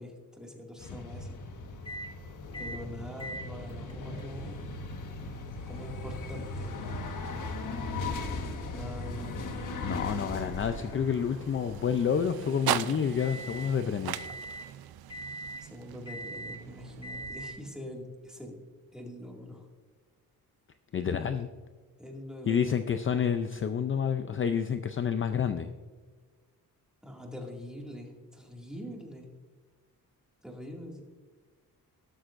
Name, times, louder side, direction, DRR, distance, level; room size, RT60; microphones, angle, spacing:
voice 1, 0.0-1.4 2.6-4.7 5.7-6.8 8.7-9.4 15.6-18.6 18.9-19.7 22.0-23.0 27.0-29.3 30.4-31.0, left 1 dB, ahead, -1 dB, 2.2 m, -43 dB
sound 1, 0.8-12.2, left 3 dB, 60° left, 1.4 m, -38 dB
sound 2, 1.8-2.1 2.5-2.8 3.2-13.7 14.1-14.7 15.1-15.7 16.1-16.6 17.0-17.6, right 1 dB, 15° left, 1.8 m, -45 dB
voice 2, 9.8-14.2 20.9-21.5 22.5-25.7, left 7 dB, 35° left, 9 dB, 0.5 m, -29 dB
sound 3, 9.8-17.9, right 12 dB, 85° right, 0.6 m, -39 dB
13.0 x 13.0 x 2.5 m, 1.4 s
wide cardioid pair, 140°, 36 cm